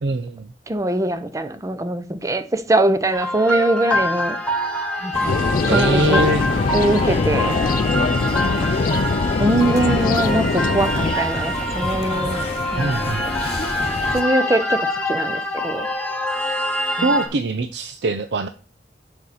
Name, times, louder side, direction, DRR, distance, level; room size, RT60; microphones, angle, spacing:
voice 1, 0.0-0.5 5.7-6.4 12.8-13.3 17.0-18.5, right 2 dB, 70° right, 0.5 m, -22 dB
voice 2, 0.7-4.4 5.0-6.2 6.7-7.7 8.0-8.8 9.4-12.4 12.7-13.4 14.1-15.9 17.0-17.1, right 1 dB, 20° right, 0.7 m, -22 dB
sound 1, 3.1-17.3, equal, 5° left, 1.1 m, -25 dB
sound 2, 5.1-14.2, left 2 dB, 35° left, 1.0 m, -29 dB
sound 3, 5.3-11.2, left 4 dB, 50° left, 0.4 m, -22 dB
11.0 x 4.3 x 4.1 m
head